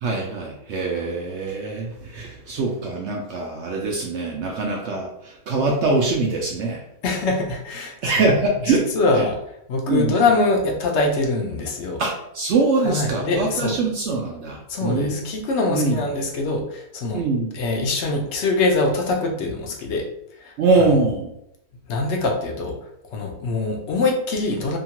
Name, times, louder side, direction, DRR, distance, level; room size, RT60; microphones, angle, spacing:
voice 1, 0.0-6.8 8.0-8.9 9.2-9.3 9.9-10.2 12.0-15.3 15.7-16.0 17.1-17.5 20.6-21.3, right 3 dB, 70° right, -1 dB, 0.7 m, -23 dB
voice 2, 7.0-8.3 8.7-9.4 9.7-12.0 12.8-13.8 14.7-17.2 17.5-20.0 20.4-20.5 21.9-22.8 23.1-24.8, left 3 dB, 60° left, 1 dB, 0.8 m, -23 dB
2.8 x 2.3 x 2.8 m, 0.77 s
omnidirectional pair, 1.6 m